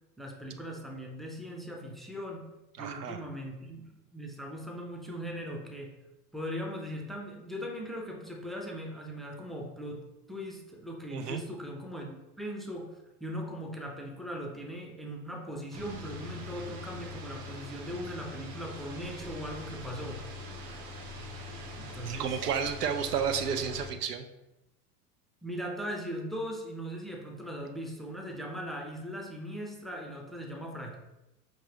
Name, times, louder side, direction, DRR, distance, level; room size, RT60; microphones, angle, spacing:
voice 1, 0.2-2.5 2.8-5.9 6.3-20.3 21.8-22.4 25.4-31.0, equal, ahead, 1 dB, 0.5 m, -39 dB
voice 2, 2.8-3.2 11.1-11.4 22.1-24.3, right 7 dB, 85° right, 7 dB, 0.6 m, -31 dB
sound 1, 15.7-23.9, left 2 dB, 65° right, 1.1 m, -43 dB
5.0 x 3.0 x 2.8 m, 0.93 s
hypercardioid pair, 75°, 46 cm